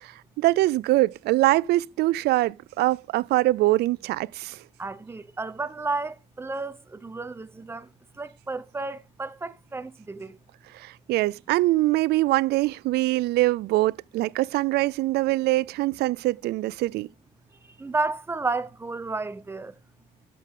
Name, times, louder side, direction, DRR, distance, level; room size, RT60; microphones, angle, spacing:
voice 1, 0.0-4.6 10.7-17.1, right 18 dB, 75° right, 0.4 m, -23 dB
voice 2, 4.8-7.9 8.2-10.4 17.8-19.7, right 3 dB, 15° right, 0.8 m, -32 dB
12.5 x 6.9 x 3.7 m
cardioid pair, 110°, 17 cm